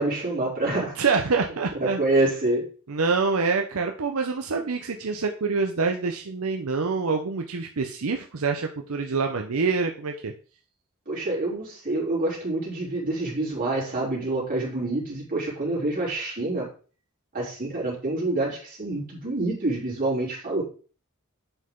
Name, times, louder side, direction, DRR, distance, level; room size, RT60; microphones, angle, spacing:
voice 1, 0.0-0.9 1.8-2.7 11.1-16.7 17.3-20.6, right 2 dB, 40° right, -5 dB, 3.9 m, -27 dB
voice 2, 1.0-2.0 2.9-10.3, right 4 dB, 80° right, 4 dB, 0.8 m, -26 dB
8.1 x 5.7 x 3.9 m, 0.39 s
head